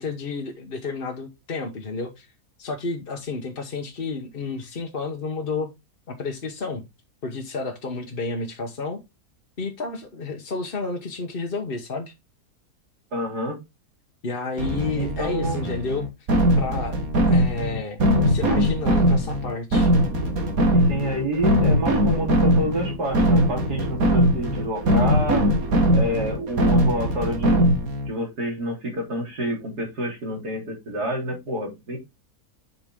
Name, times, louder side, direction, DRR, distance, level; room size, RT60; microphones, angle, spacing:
voice 1, 0.0-2.3 2.6-5.7 6.1-6.8 7.2-9.0 9.6-12.1 14.2-16.1 16.6-17.0 17.3-19.9, left 3 dB, 40° left, 1.1 m, -31 dB
voice 2, 13.1-13.6 14.9-15.6 20.9-25.4 25.9-27.7 28.1-32.0, equal, 80° right, 3.9 m, -28 dB
sound 1, 14.6-28.1, equal, 60° right, 2.1 m, -21 dB
7.7 x 5.6 x 3.6 m
omnidirectional pair, 1.7 m